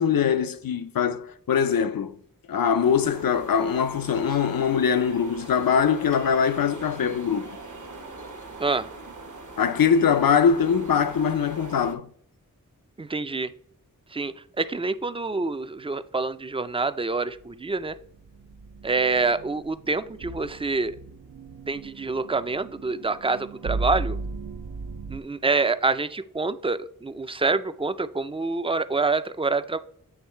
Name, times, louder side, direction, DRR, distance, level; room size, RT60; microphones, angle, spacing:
voice 1, 0.0-2.2 2.5-7.5 9.6-12.1, left 7 dB, 80° left, 0.5 m, -22 dB
sound 1, 2.8-12.0, right 3 dB, 60° right, 1.0 m, -42 dB
voice 2, 13.0-13.5 14.1-17.9 18.8-20.9 21.7-24.2 25.1-29.8, right 3 dB, 15° right, 0.3 m, -26 dB
sound 2, 17.9-25.2, right 3 dB, 75° right, 0.5 m, -36 dB
8.1 x 3.1 x 4.4 m
wide cardioid pair, 55°, 34 cm